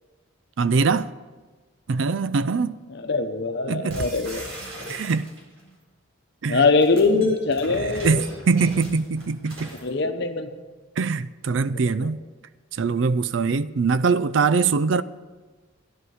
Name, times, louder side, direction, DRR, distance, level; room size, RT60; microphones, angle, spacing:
voice 1, 0.6-1.1 1.9-2.8 3.7-4.1 4.9-5.3 6.4-6.7 7.1-7.3 7.7-9.8 11.0-12.2 12.7-15.0, right 4 dB, 65° right, 0.4 m, -23 dB
voice 2, 3.1-5.0 6.5-8.2 9.8-10.5, left 4 dB, 55° left, 1.0 m, -22 dB
sound 1, 3.9-5.6 6.6-9.9, right 1 dB, 85° right, 4.1 m, -38 dB
14.0 x 11.0 x 4.9 m
head